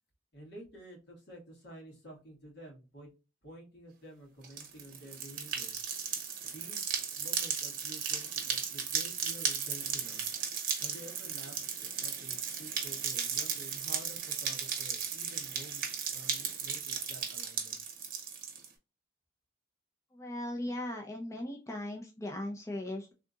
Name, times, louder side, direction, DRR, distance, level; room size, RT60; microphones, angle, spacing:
voice 1, 0.3-3.1 3.4-5.7 6.5-10.2 10.8-15.8 16.1-17.8, right 1 dB, 60° left, -1 dB, 1.9 m, -51 dB
sound 1, 4.4-18.7, right 7 dB, 50° right, 0.9 m, -35 dB
voice 2, 20.1-23.1, left 1 dB, 15° left, 1 dB, 0.5 m, -38 dB
3.5 x 2.7 x 2.4 m, 0.29 s
head